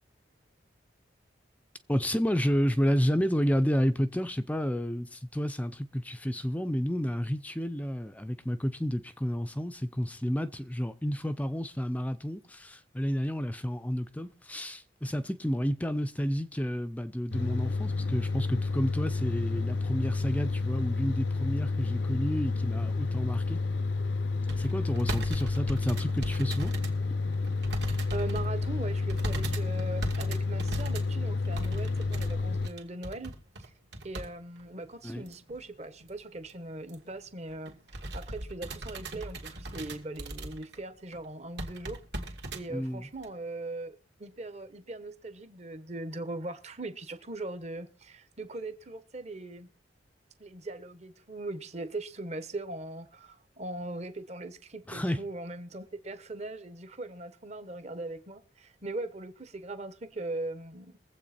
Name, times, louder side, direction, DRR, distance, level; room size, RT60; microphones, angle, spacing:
voice 1, 1.9-23.6 24.6-26.7 35.0-35.2 42.7-43.0 54.9-55.2, equal, 10° left, 0.6 m, -30 dB
sound 1, 17.3-32.7, left 3 dB, 70° left, 0.7 m, -30 dB
sound 2, 24.5-27.0 27.3-28.5 29.1-34.3 34.6-34.7 35.3-35.6 36.0-36.1 36.3-36.5 36.9-37.1 37.5-40.8 41.1-41.2 41.6-42.6 43.2-43.3, right 2 dB, 65° right, 2.3 m, -39 dB
voice 2, 28.1-33.3 33.6-33.7 34.0-49.7 50.4-61.0, right 2 dB, 35° right, 1.1 m, -40 dB
22.5 x 7.9 x 4.3 m
head